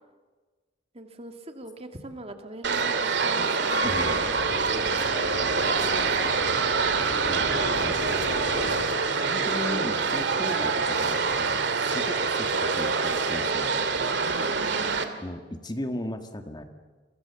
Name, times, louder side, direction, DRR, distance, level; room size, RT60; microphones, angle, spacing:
voice 1, 0.9-5.0 5.6-6.6 7.5-8.2 14.5-15.3, right 1 dB, 35° right, 6 dB, 2.4 m, -42 dB
sound 1, 2.6-15.0, right 4 dB, 70° right, 2.3 m, -25 dB
sound 2, 3.8-8.9, left 1 dB, 60° left, 3.6 m, -37 dB
voice 2, 3.8-4.3 7.3-8.0 9.2-14.2 15.2-16.6, left 1 dB, 25° left, 6 dB, 1.7 m, -36 dB
29.5 x 24.5 x 7.1 m, 1.4 s
head